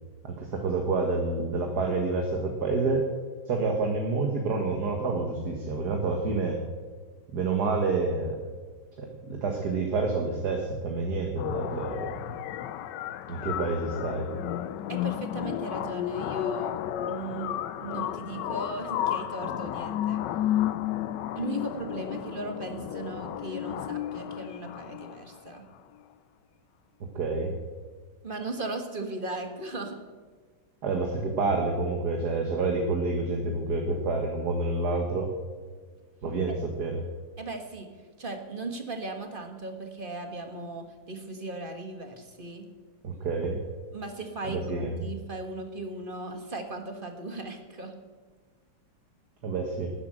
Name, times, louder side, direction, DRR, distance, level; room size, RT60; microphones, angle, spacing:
voice 1, 0.2-3.0 3.5-6.6 7.3-8.4 9.0-12.2 13.3-14.3 27.2-27.5 30.8-35.3 36.2-36.9 43.0-43.6 44.4-44.9 49.4-49.9, right 3 dB, 55° right, 3 dB, 2.0 m, -28 dB
sound 1, 11.4-25.4, left 11 dB, 70° left, 1.2 m, -32 dB
voice 2, 14.9-16.7 17.0-17.5 17.8-20.2 21.3-25.7 28.2-30.0 36.5-36.6 37.4-37.9 38.2-42.7 43.9-47.9, right 2 dB, 30° right, 5 dB, 1.5 m, -37 dB
12.5 x 10.0 x 7.8 m, 1.5 s
omnidirectional pair, 2.2 m